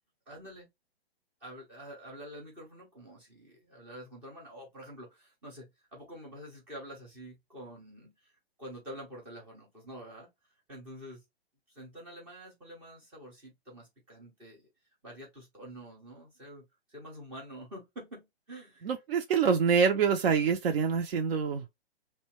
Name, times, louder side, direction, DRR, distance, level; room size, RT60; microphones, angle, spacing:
voice 1, 0.3-0.7 1.4-10.3 10.7-11.2 11.7-14.7 15.0-18.9, equal, 5° right, 0.3 m, -47 dB
voice 2, 18.8-21.6, right 6 dB, 65° right, 0.6 m, -26 dB
2.7 x 2.2 x 2.8 m
hypercardioid pair, 140°, 32 cm